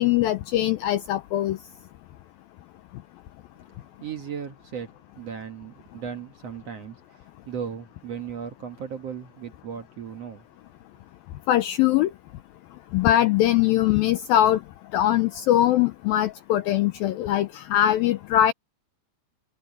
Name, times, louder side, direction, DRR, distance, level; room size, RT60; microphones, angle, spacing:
voice 1, 0.0-1.6 11.5-12.1 12.9-14.6 14.9-18.5, left 12 dB, 85° left, 2.1 m, -21 dB
voice 2, 3.7-4.9 5.1-10.5, right 7 dB, 65° right, 1.6 m, -37 dB
omnidirectional pair, 5.0 m